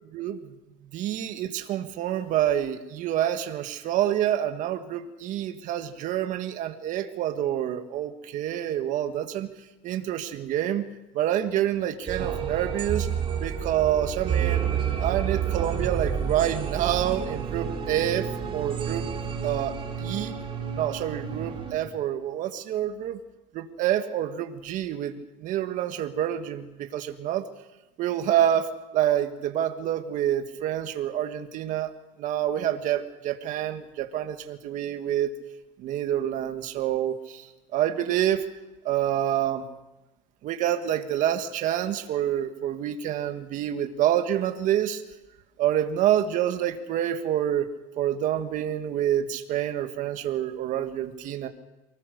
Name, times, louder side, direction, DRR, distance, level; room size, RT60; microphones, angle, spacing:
voice 1, 0.9-9.5 9.8-10.8 11.1-13.1 13.4-14.7 15.0-18.3 18.5-19.1 19.4-20.3 20.7-23.2 23.5-27.5 28.0-31.9 32.2-35.3 35.8-37.4 37.7-38.4 38.8-39.6 40.4-45.0 45.6-47.7 48.0-51.5, right 11 dB, 50° right, 7 dB, 1.7 m, -27 dB
sound 1, 12.1-21.8, right 7 dB, 30° right, 3.4 m, -30 dB
24.0 x 19.5 x 6.7 m, 1.0 s
cardioid pair, 140°, 17 cm